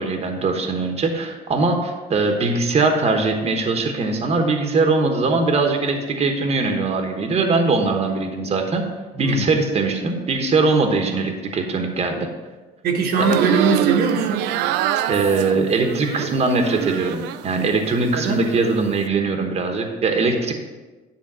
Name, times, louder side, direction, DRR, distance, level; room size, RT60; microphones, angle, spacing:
voice 1, 0.0-8.9 9.2-12.3 15.1-20.5, right 3 dB, 35° right, 4 dB, 1.1 m, -21 dB
voice 2, 9.1-9.5 12.8-14.5 18.1-18.5, right 4 dB, 70° right, 1 dB, 1.1 m, -21 dB
sound 1, 13.1-17.5 17.9-18.6, right 11 dB, 90° right, 0.4 m, -25 dB
10.0 x 3.4 x 6.1 m, 1.2 s
cardioid pair, 110°, 17 cm